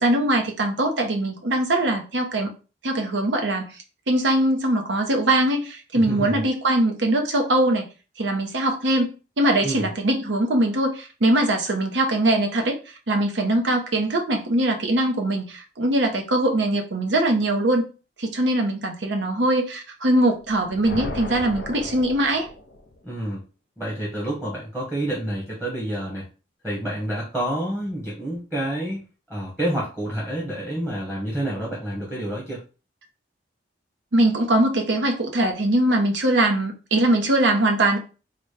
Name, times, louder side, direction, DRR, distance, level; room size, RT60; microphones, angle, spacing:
voice 1, 0.0-2.5 2.8-3.7 4.1-7.8 8.2-9.1 9.4-12.8 13.1-17.9 18.2-22.5 34.1-38.0, right 1 dB, 70° right, 3 dB, 0.8 m, -21 dB
voice 2, 5.9-6.4 9.6-9.9 23.0-23.4 23.8-26.3 26.6-29.0 29.3-32.6, right 1 dB, 5° right, -5 dB, 1.1 m, -28 dB
sound 1, 20.4-23.0, left 1 dB, 65° left, 0.6 m, -35 dB
3.9 x 2.2 x 3.2 m, 0.34 s
head